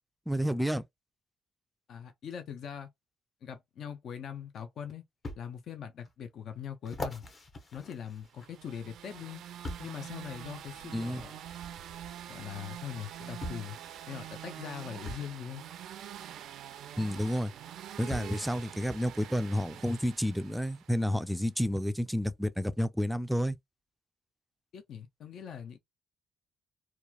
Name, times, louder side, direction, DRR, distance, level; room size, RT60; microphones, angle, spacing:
voice 1, 0.3-0.8 10.9-11.2 17.0-17.5 18.0-23.6, equal, ahead, 0.3 m, -30 dB
voice 2, 1.9-2.9 3.4-5.0 5.4-7.2 7.7-9.4 9.8-11.3 12.3-13.8 14.1-15.6 24.7-25.8, left 8 dB, 70° left, 0.5 m, -41 dB
sound 1, 5.2-5.4 6.0-6.1 6.8-8.7 9.6-10.0 11.2-11.3 12.6-12.7 13.4-13.7 15.0-15.3 16.9-17.0 18.1-18.4 19.2-19.3, left 1 dB, 35° left, 0.8 m, -41 dB
sound 2, 8.3-21.2, right 10 dB, 75° right, 0.4 m, -45 dB
2.9 x 2.3 x 2.3 m
cardioid pair, 90°, 0 cm